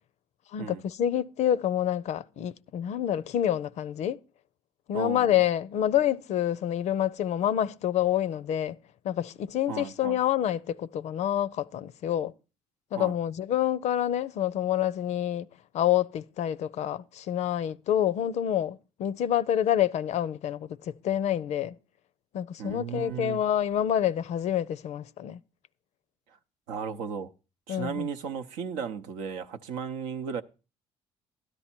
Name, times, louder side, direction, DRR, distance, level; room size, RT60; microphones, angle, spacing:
voice 1, 0.5-4.2 4.9-8.8 9.0-12.3 12.9-15.5 15.7-21.8 22.3-25.4 27.7-28.1, left 10 dB, 60° left, 0.5 m, -27 dB
voice 2, 4.9-5.4 9.7-10.2 12.9-13.1 22.6-23.4 26.7-27.3 27.7-30.4, right 7 dB, 75° right, 0.7 m, -35 dB
13.0 x 9.7 x 4.4 m
hypercardioid pair, 55°, 13 cm